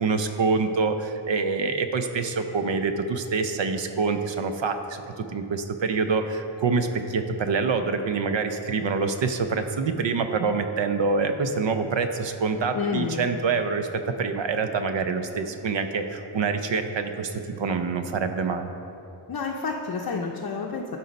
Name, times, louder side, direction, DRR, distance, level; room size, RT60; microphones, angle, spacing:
voice 1, 0.0-18.7, right 4 dB, 65° right, 7 dB, 0.7 m, -26 dB
voice 2, 12.7-13.2 19.3-20.9, left 5 dB, 45° left, -1 dB, 0.6 m, -29 dB
12.0 x 4.1 x 5.2 m, 2.7 s
wide cardioid pair, 120°, 49 cm